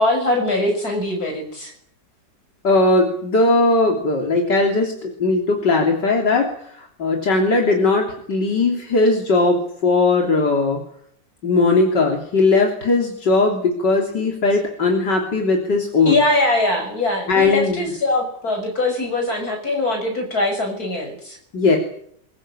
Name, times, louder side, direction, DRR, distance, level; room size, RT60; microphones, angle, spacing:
voice 1, 0.0-1.7 16.1-21.4, left 2 dB, 60° left, 3 dB, 6.9 m, -22 dB
voice 2, 2.6-6.5 6.7-10.8 11.4-16.2 17.3-17.8 21.5-21.8, left 3 dB, 80° left, 1 dB, 3.9 m, -18 dB
22.5 x 22.0 x 8.9 m, 0.67 s
omnidirectional pair, 1.9 m